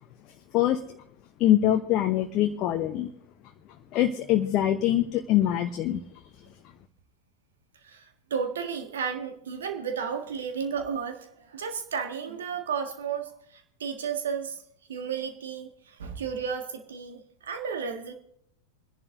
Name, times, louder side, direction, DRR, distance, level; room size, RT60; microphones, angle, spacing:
voice 1, 1.4-3.1 3.9-6.0, left 12 dB, 35° left, 6 dB, 0.8 m, -23 dB
voice 2, 7.8-14.6 14.9-18.1, right 6 dB, 65° right, 5 dB, 1.7 m, -33 dB
28.5 x 11.0 x 2.6 m, 0.69 s
figure-of-eight pair, 90°, 0 cm